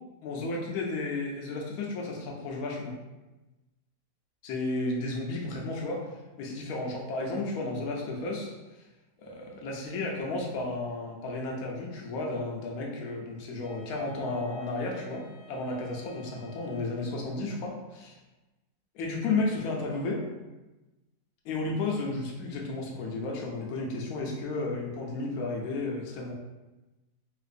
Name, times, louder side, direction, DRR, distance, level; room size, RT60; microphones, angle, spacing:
voice 1, 0.2-2.9 4.4-6.0 6.4-8.5 9.2-18.2 18.9-20.3 21.4-26.3, left 2 dB, 70° left, -1 dB, 1.1 m, -33 dB
Wind instrument woodwind instrument, 13.6-17.5, right 2 dB, 30° right, 0.7 m, -52 dB
3.8 x 2.5 x 2.5 m, 1.1 s
omnidirectional pair, 1.7 m